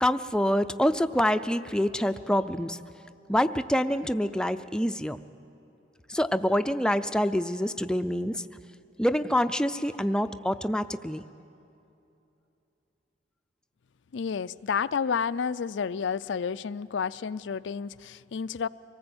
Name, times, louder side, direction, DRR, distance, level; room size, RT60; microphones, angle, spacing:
voice 1, 0.0-2.8 3.3-5.2 6.1-8.4 9.0-11.2, equal, 5° left, 9 dB, 0.5 m, -26 dB
voice 2, 14.1-18.7, left 6 dB, 80° left, 15 dB, 0.4 m, -30 dB
25.0 x 18.5 x 7.9 m, 2.8 s
head